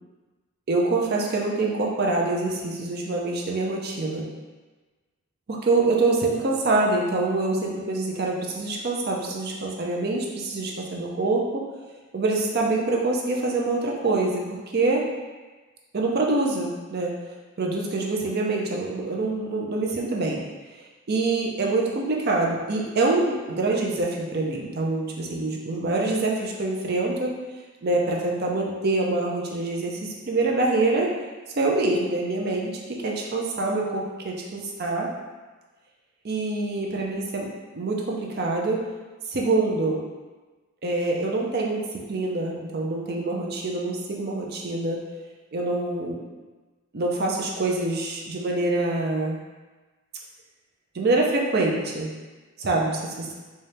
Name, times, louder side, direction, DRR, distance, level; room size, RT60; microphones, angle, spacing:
voice 1, 0.7-4.3 5.5-11.6 12.1-14.4 14.7-15.0 15.9-17.1 17.6-20.4 21.1-27.3 27.8-31.1 31.6-35.1 36.2-37.5 37.7-38.9 39.3-40.0 40.8-41.8 42.1-45.0 45.5-46.2 46.9-49.4 50.9-52.1 52.6-53.3, right 2 dB, 45° right, -1 dB, 0.5 m, -25 dB
4.1 x 2.3 x 3.3 m, 1.3 s
head